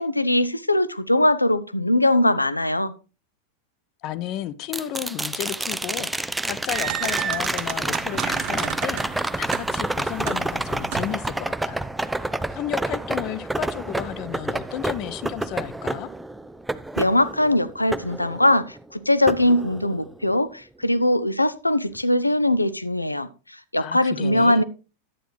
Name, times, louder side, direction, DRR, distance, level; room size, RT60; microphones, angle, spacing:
voice 1, 0.0-2.9 17.0-23.3 23.7-24.6, left 1 dB, 85° left, 0.6 m, -21 dB
voice 2, 4.0-11.8 12.1-12.2 12.5-16.1 23.8-24.6, left 12 dB, 40° left, 0.7 m, -33 dB
sound 1, 4.7-18.8 19.3-20.3 22.5-22.6, right 2 dB, 5° right, 0.4 m, -29 dB
sound 2, 6.3-11.3, right 11 dB, 40° right, 0.8 m, -33 dB
11.0 x 8.9 x 3.2 m
figure-of-eight pair, 90°, 0 cm